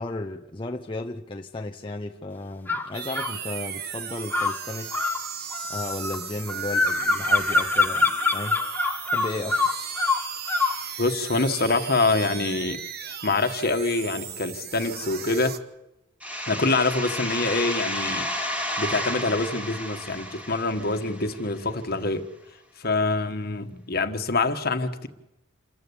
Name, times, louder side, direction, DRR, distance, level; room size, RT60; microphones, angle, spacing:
voice 1, 0.0-5.1 5.7-8.6 9.1-9.7, left 2 dB, 25° left, 0.7 m, -34 dB
sound 1, 2.7-3.4 4.3-10.8, left 3 dB, 10° left, 1.1 m, -25 dB
sound 2, 2.9-15.6, right 8 dB, 55° right, 1.2 m, -37 dB
voice 2, 11.0-12.8 13.2-15.5 16.5-18.3 18.8-22.3 22.8-25.1, left 3 dB, 50° left, 1.5 m, -25 dB
sound 3, 16.2-21.7, equal, 5° right, 2.2 m, -32 dB
28.0 x 14.0 x 8.3 m
head